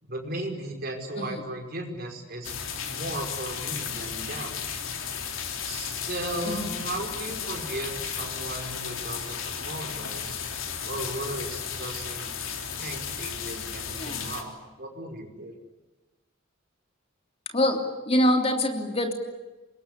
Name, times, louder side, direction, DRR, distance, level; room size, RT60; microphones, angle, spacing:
voice 1, 0.0-4.6 5.6-10.4 10.8-12.3 12.8-15.5, right 1 dB, 50° right, 2 dB, 5.3 m, -36 dB
sound 1, 2.4-14.4, left 7 dB, 80° left, 3.7 m, -34 dB
voice 2, 14.0-14.3 17.5-19.1, left 1 dB, 30° left, 4 dB, 3.2 m, -25 dB
26.5 x 22.0 x 9.9 m, 1.1 s
head